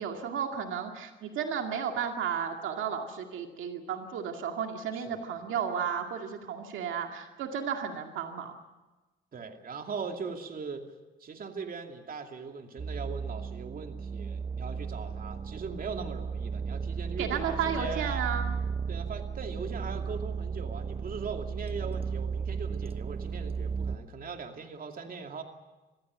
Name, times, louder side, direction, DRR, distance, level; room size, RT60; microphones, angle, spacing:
voice 1, 0.0-8.5 17.2-18.6, right 7 dB, 80° right, 4 dB, 2.2 m, -33 dB
voice 2, 9.3-10.8 11.2-18.3 18.9-25.4, right 5 dB, 45° right, 4 dB, 2.6 m, -40 dB
sound 1, 12.8-24.0, right 6 dB, 30° right, 1.0 m, -35 dB
24.0 x 16.0 x 9.3 m, 1.2 s
cardioid pair, 90°, 20 cm